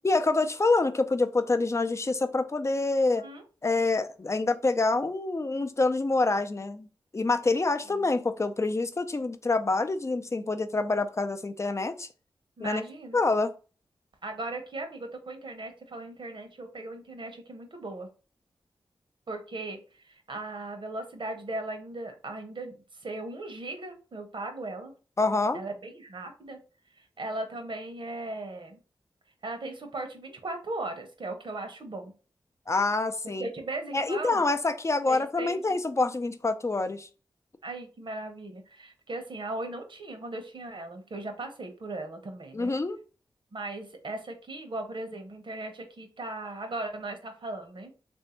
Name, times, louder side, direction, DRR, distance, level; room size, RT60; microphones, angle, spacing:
voice 1, 0.0-3.2 3.6-6.9 7.1-12.1 12.6-12.8 13.1-13.5 25.2-25.6 32.7-33.5 33.9-37.1 42.5-43.0, left 3 dB, 30° left, 0.5 m, -26 dB
voice 2, 12.6-13.2 14.2-18.1 19.3-22.8 23.0-24.9 25.5-26.6 27.2-28.8 29.4-32.1 33.2-34.4 35.1-35.6 37.6-42.8 43.5-47.9, right 2 dB, 60° right, 1.0 m, -38 dB
3.2 x 2.7 x 4.3 m
cardioid pair, 45°, 9 cm